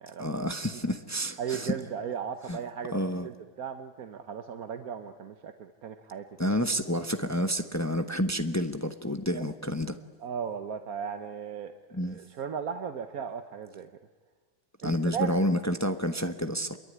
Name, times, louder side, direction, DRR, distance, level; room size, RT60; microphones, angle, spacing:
voice 1, 0.2-1.8 2.5-2.6 2.9-3.3 6.4-10.0 11.9-12.2 14.8-16.8, equal, 15° left, 8 dB, 0.8 m, -29 dB
voice 2, 1.4-6.2 9.3-9.4 10.2-13.9 14.8-15.4, right 7 dB, 60° right, 8 dB, 1.4 m, -36 dB
27.0 x 23.0 x 9.6 m, 1.5 s
omnidirectional pair, 1.9 m